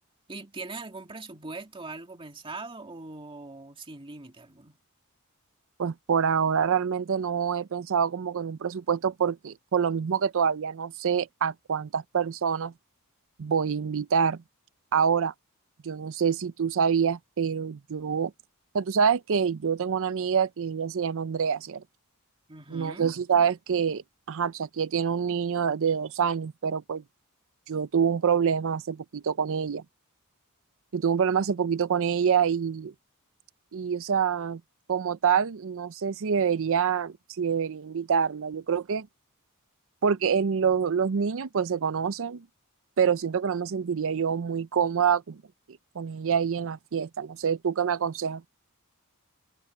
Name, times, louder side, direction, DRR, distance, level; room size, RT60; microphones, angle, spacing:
voice 1, 0.3-4.8 22.5-23.1, right 3 dB, 25° right, 2.5 m, -41 dB
voice 2, 5.8-12.7 13.4-14.4 14.9-15.3 15.8-18.3 18.7-21.8 22.7-27.0 27.7-29.8 30.9-32.9 33.7-34.6 34.9-39.1 40.0-42.4 43.0-45.4 46.0-48.5, right 7 dB, 65° right, 0.5 m, -26 dB
head